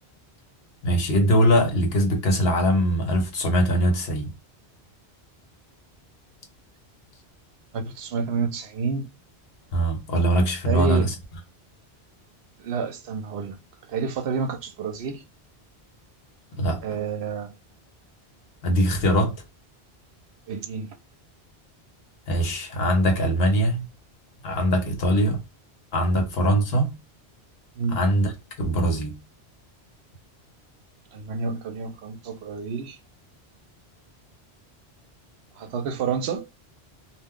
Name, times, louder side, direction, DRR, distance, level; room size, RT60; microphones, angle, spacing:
voice 1, 0.8-4.3 9.7-11.1 16.6-16.8 18.6-19.3 22.3-23.9 24.4-25.4 25.9-27.0 27.9-28.3 28.6-29.2, equal, 65° left, 1.1 m, -22 dB
voice 2, 7.7-9.1 10.6-11.1 12.6-13.6 13.9-15.2 16.8-17.5 20.5-20.9 27.8-28.0 31.1-33.0 35.6-36.4, right 5 dB, 75° right, 0.9 m, -29 dB
2.4 x 2.2 x 3.5 m
omnidirectional pair, 1.1 m